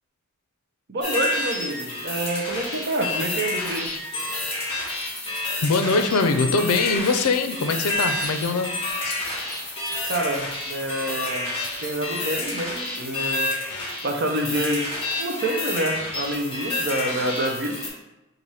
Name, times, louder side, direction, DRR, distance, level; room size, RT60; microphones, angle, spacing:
voice 1, 0.9-3.9 10.1-11.5 11.8-13.5 14.0-14.9 15.2-17.8, right 1 dB, 50° right, 2 dB, 0.7 m, -27 dB
sound 1, 1.0-17.9, left 2 dB, 25° left, 1.0 m, -29 dB
Keys jangling, 3.5-12.5, equal, 5° left, 1.0 m, -41 dB
voice 2, 5.6-8.7 9.0-9.2, left 3 dB, 90° left, 7 dB, 0.5 m, -22 dB
4.2 x 2.5 x 4.7 m, 1.0 s
head